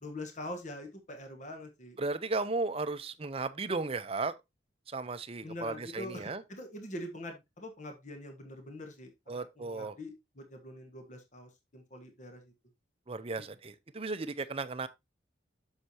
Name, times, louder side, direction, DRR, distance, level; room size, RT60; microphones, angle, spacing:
voice 1, 0.0-2.0 5.4-12.5, left 1 dB, 40° left, 1.4 m, -44 dB
voice 2, 2.0-4.3 4.9-6.4 9.3-10.0 13.1-14.9, right 3 dB, 30° right, 0.6 m, -35 dB
7.9 x 6.5 x 2.8 m
head